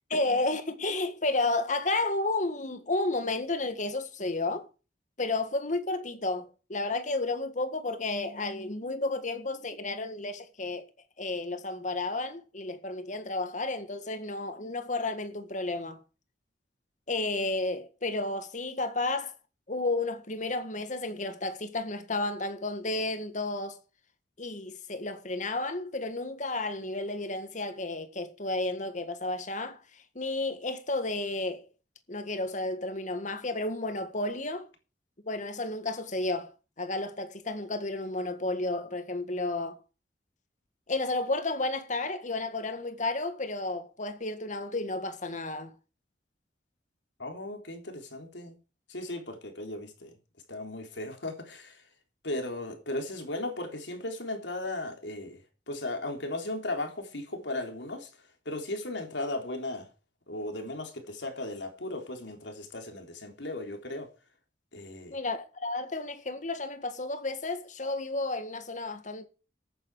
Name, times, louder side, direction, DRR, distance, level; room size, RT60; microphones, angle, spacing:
voice 1, 0.1-4.7 5.2-10.8 11.2-16.0 17.1-19.3 19.7-23.8 24.4-31.6 32.1-34.7 35.2-36.5 36.8-39.8 40.9-45.7 65.1-69.3, left 2 dB, 45° left, 1.8 m, -32 dB
voice 2, 47.2-48.6 48.9-50.1 50.5-51.8 52.2-58.1 58.4-59.9 60.3-64.1 64.7-65.1, left 2 dB, 85° left, 3.6 m, -36 dB
14.5 x 9.5 x 4.9 m
head